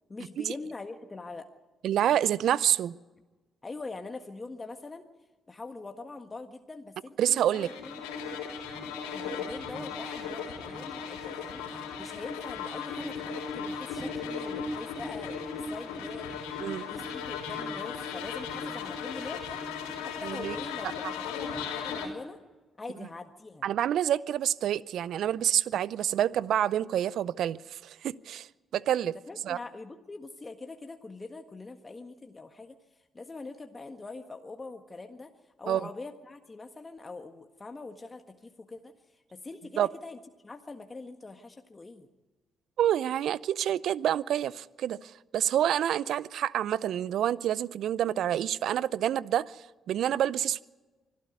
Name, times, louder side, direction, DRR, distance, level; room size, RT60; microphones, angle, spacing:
voice 1, 0.1-1.5 3.6-5.1 5.5-8.1 9.1-16.4 16.8-19.6 20.0-22.4 22.8-23.7 29.3-32.8 33.1-35.3 35.6-40.2 40.4-42.1, left 3 dB, 30° left, 6 dB, 1.6 m, -43 dB
voice 2, 1.8-3.0 7.2-7.7 16.6-16.9 20.2-20.6 23.6-28.5 28.7-29.2 29.4-29.6 35.7-35.9 39.8-39.9 42.8-50.6, right 11 dB, 65° right, 21 dB, 0.6 m, -28 dB
sound 1, 7.5-22.1, left 5 dB, 85° left, 3.6 m, -36 dB
25.0 x 13.0 x 9.5 m, 1.2 s
hypercardioid pair, 45°, 0 cm